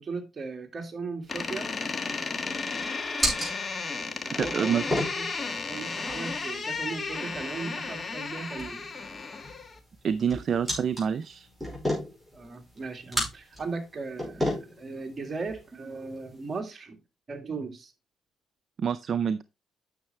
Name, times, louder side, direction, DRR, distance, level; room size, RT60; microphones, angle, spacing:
voice 1, 0.0-1.7 3.9-4.8 5.1-8.9 12.3-17.0 17.3-17.9, right 4 dB, 35° right, 4 dB, 2.1 m, -37 dB
sound 1, 1.2-16.6, equal, 5° right, 5.5 m, -36 dB
Door, 1.3-9.8, left 4 dB, 35° left, 1.5 m, -34 dB
voice 2, 4.4-4.9 10.0-11.5 18.8-19.4, right 7 dB, 55° right, 13 dB, 0.5 m, -27 dB
9.6 x 6.5 x 3.4 m, 0.26 s
cardioid pair, 90°, 0 cm